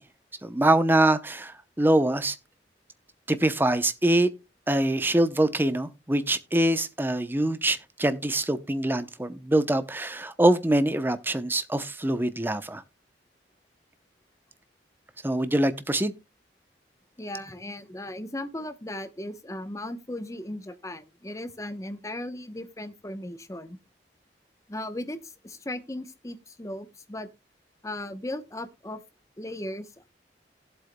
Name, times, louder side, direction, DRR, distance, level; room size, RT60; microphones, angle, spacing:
voice 1, 0.4-2.4 3.3-4.3 4.7-12.8 15.2-16.1, right 1 dB, 10° right, 0.7 m, -24 dB
voice 2, 17.2-23.8 24.7-27.3 27.8-29.0 29.4-30.1, left 1 dB, 20° left, 0.9 m, -37 dB
18.0 x 7.9 x 2.2 m
head